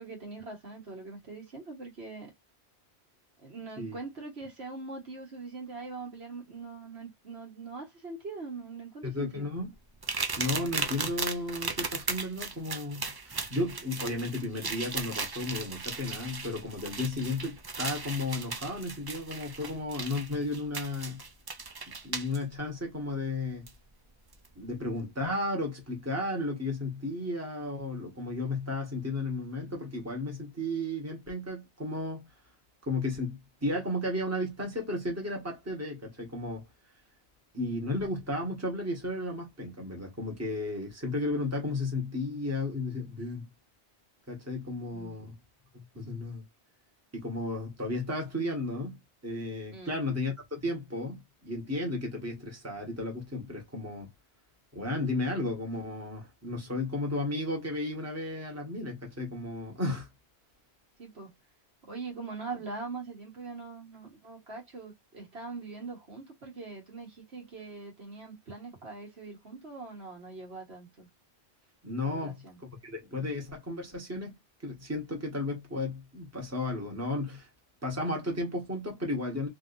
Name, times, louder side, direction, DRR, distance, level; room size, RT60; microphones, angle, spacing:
voice 1, 0.0-2.3 3.4-9.5 44.9-45.3 49.7-50.0 61.0-61.3 61.8-71.1 72.0-72.6, right 4 dB, 70° right, 1.6 m, -42 dB
voice 2, 9.0-9.7 10.4-21.2 22.0-23.7 24.5-32.3 32.8-36.6 37.5-43.5 44.3-45.4 45.7-46.4 47.1-54.1 54.7-60.1 71.8-74.3 74.6-77.5 77.8-79.5, left 2 dB, 15° right, 1.4 m, -34 dB
sound 1, 10.0-22.4 23.7-23.8 24.3-24.5, right 4 dB, 35° right, 0.3 m, -36 dB
3.5 x 2.8 x 2.5 m
omnidirectional pair, 1.1 m